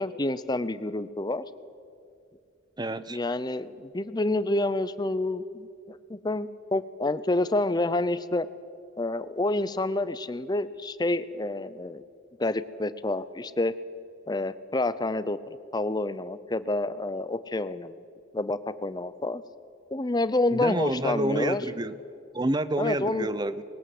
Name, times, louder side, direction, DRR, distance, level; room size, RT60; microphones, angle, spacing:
voice 1, 0.0-1.4 3.1-8.5 9.0-12.0 12.4-13.7 14.3-18.0 18.3-19.4 19.9-21.6 22.8-23.3, left 2 dB, 20° left, 15 dB, 0.6 m, -28 dB
voice 2, 2.8-3.2 20.5-22.0 22.3-23.6, right 1 dB, 20° right, 14 dB, 0.7 m, -28 dB
20.0 x 19.0 x 7.8 m, 2.5 s
head